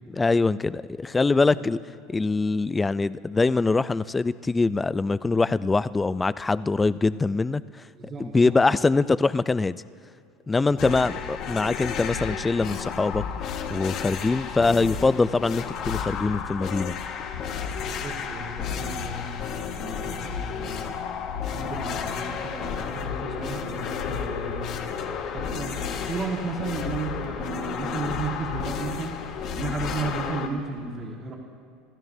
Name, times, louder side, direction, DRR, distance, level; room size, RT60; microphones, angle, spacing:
voice 1, 0.1-1.8 2.1-7.6 8.2-9.8 10.5-13.2 13.7-16.9, left 3 dB, 15° left, 16 dB, 0.3 m, -23 dB
voice 2, 1.3-1.7 7.9-8.9 10.6-11.2 17.8-19.4 19.7-21.2 21.4-25.1 25.3-29.2 29.6-31.4, right 4 dB, 35° right, -2 dB, 1.6 m, -34 dB
sound 1, 10.8-30.5, left 7 dB, 55° left, 1.3 m, -32 dB
26.5 x 12.5 x 2.7 m, 2.4 s
supercardioid pair, 115°, 0 cm